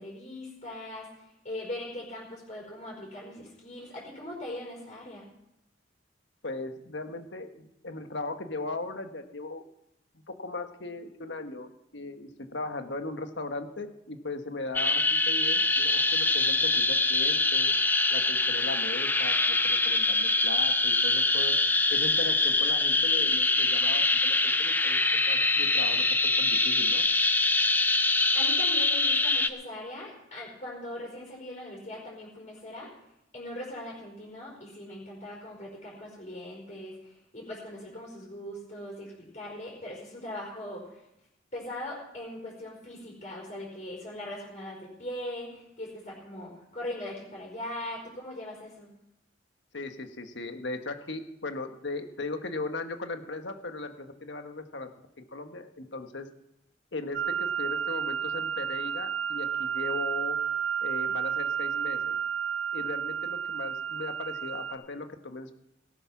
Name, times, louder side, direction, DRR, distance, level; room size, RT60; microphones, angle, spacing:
voice 1, 0.0-5.2 28.3-32.9 33.3-41.0 41.5-48.9, left 1 dB, 40° left, -5 dB, 5.0 m, -40 dB
voice 2, 6.4-9.6 10.1-17.7 18.1-21.6 21.9-26.1 26.4-27.0 49.7-56.3 56.9-60.4 60.8-62.2 62.7-65.5, left 2 dB, 70° left, 7 dB, 1.4 m, -38 dB
sound 1, 14.7-29.5, left 2 dB, 10° left, 0.6 m, -24 dB
sound 2, 57.1-64.7, right 8 dB, 65° right, 2.7 m, -31 dB
18.0 x 9.1 x 6.0 m, 0.83 s
head